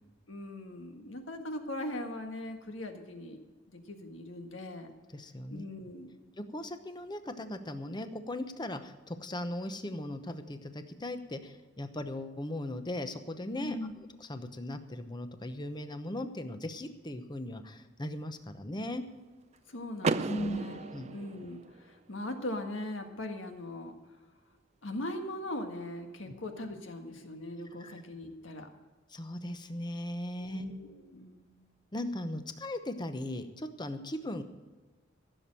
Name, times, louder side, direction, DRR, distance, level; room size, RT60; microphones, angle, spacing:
voice 1, 0.3-3.4 3.7-4.9 5.5-6.3 13.6-13.9 19.7-24.0 24.8-28.7 30.4-31.6, left 1 dB, 80° left, 5 dB, 1.7 m, -40 dB
voice 2, 5.1-5.6 6.4-13.8 14.3-19.0 20.3-20.6 20.9-21.1 26.3-26.4 27.8-27.9 29.1-30.6 31.9-34.4, left 1 dB, 25° left, 9 dB, 0.9 m, -38 dB
Car / Door, 20.0-22.0, right 4 dB, 35° right, 0.4 m, -34 dB
15.5 x 7.1 x 7.6 m, 1.3 s
head